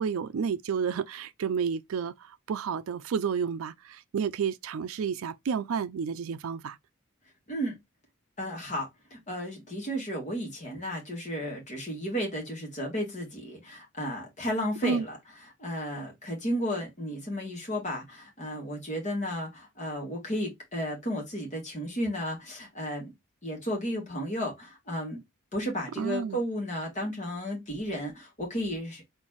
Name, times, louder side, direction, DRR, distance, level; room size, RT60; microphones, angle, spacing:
voice 1, 0.0-6.8 14.8-15.1 26.0-26.4, right 6 dB, 75° right, 0.4 m, -31 dB
voice 2, 8.4-15.2 15.6-23.1 23.4-25.2 25.5-29.0, equal, 35° left, 2.5 m, -33 dB
4.5 x 3.9 x 2.9 m
head